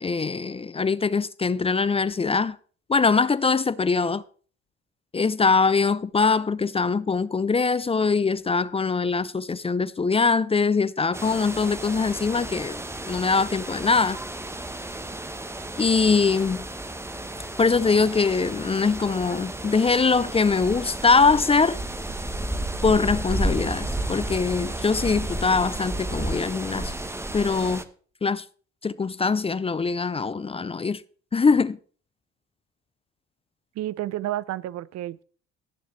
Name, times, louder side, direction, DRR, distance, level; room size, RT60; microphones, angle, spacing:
voice 1, 0.0-2.6 2.9-4.2 5.1-14.2 15.8-16.7 17.6-21.8 22.8-26.9 27.3-27.8 28.2-28.4 28.8-31.0 31.3-31.8, left 4 dB, 20° left, 0.5 m, -22 dB
sound 1, 11.1-27.8, right 1 dB, 10° right, 1.0 m, -32 dB
voice 2, 33.8-35.2, right 13 dB, 60° right, 0.6 m, -30 dB
17.5 x 7.5 x 3.2 m
supercardioid pair, 75°, 30 cm